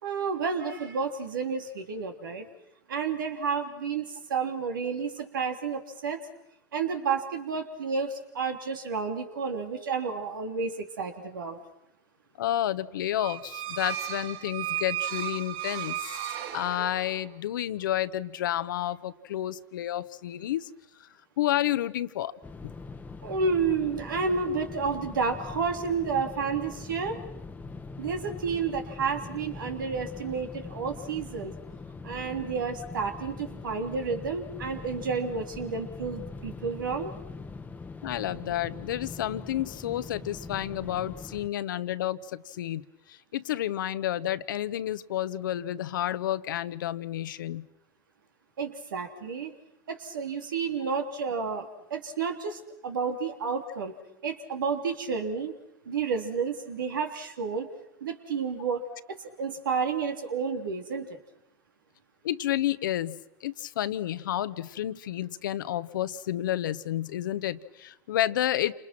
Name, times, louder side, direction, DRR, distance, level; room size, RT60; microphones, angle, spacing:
voice 1, 0.0-2.5 2.9-6.2 6.7-11.6 23.2-27.2 28.0-31.5 32.0-37.1 48.6-49.5 49.9-54.0 54.2-55.5 55.8-57.7 58.0-58.8 59.1-61.2, right 5 dB, 80° right, 5 dB, 3.3 m, -31 dB
voice 2, 12.4-16.2 16.5-20.7 21.0-21.1 21.4-22.3 38.0-47.7 62.2-68.7, left 12 dB, 75° left, 13 dB, 1.2 m, -30 dB
sound 1, 13.2-17.3, right 12 dB, 50° right, 1.8 m, -34 dB
sound 2, 22.4-41.5, left 3 dB, 15° left, 1.3 m, -42 dB
29.0 x 26.5 x 6.1 m, 0.86 s
hypercardioid pair, 95°, 11 cm